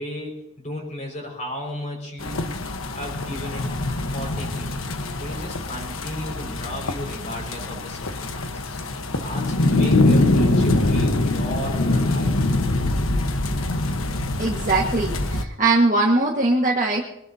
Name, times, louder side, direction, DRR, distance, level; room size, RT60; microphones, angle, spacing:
voice 1, 0.0-2.6 2.9-3.7 4.1-4.7 5.1-8.8 9.1-12.5, left 1 dB, 35° left, 0 dB, 5.8 m, -35 dB
sound 1, 2.2-15.4, left 2 dB, 85° left, 1.3 m, -23 dB
voice 2, 14.4-17.0, right 2 dB, 40° right, -2 dB, 1.8 m, -21 dB
23.0 x 19.0 x 2.9 m, 0.80 s
head